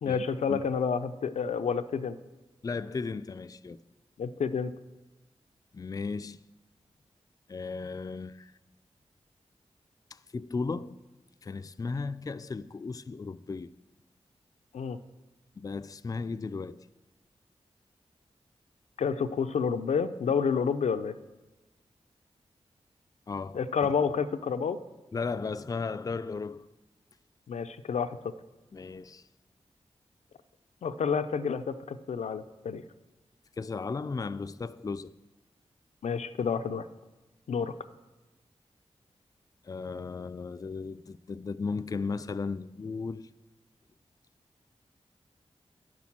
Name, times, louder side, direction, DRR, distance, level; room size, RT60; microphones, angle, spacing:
voice 1, 0.0-2.2 4.2-4.7 14.7-15.0 19.0-21.1 23.5-24.8 27.5-28.3 30.8-32.8 36.0-36.9 37.5-37.7, left 6 dB, 90° left, 0.5 m, -29 dB
voice 2, 2.6-3.8 5.7-6.4 7.5-8.5 10.1-11.0 11.4-13.7 15.6-16.9 23.3-23.6 25.1-26.7 28.7-29.3 33.6-35.1 39.6-43.3, left 4 dB, 30° left, 0.4 m, -35 dB
9.8 x 6.2 x 7.2 m
cardioid pair, 60°, 11 cm